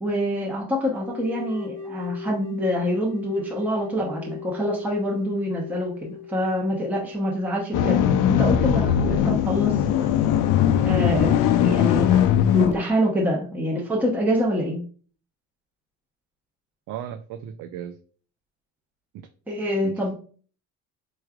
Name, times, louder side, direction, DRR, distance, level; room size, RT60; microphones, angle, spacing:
voice 1, 0.0-10.1 10.8-12.2 12.5-14.8 19.5-20.1, equal, 5° right, -1 dB, 0.7 m, -26 dB
sound 1, 1.0-7.7, left 5 dB, 25° right, 1.2 m, -39 dB
sound 2, 7.7-12.7, left 9 dB, 70° left, 0.4 m, -20 dB
voice 2, 16.9-18.0 19.8-20.1, right 10 dB, 65° right, 6 dB, 0.4 m, -36 dB
4.6 x 3.1 x 2.3 m, 0.42 s
cardioid pair, 145°, 33 cm